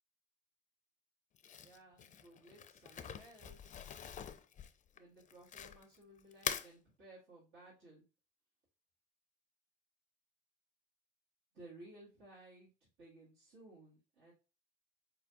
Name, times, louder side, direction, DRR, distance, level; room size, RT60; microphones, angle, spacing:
Crumpling crinkling, 1.4-6.0 6.3-6.7, left 8 dB, 45° left, 0.5 m, -44 dB
voice 1, 1.6-3.8 5.0-8.0 11.5-12.7 13.0-14.3, right 2 dB, 85° right, -8 dB, 1.8 m, -58 dB
4.2 x 3.9 x 2.4 m, 0.32 s
hypercardioid pair, 60°, 18 cm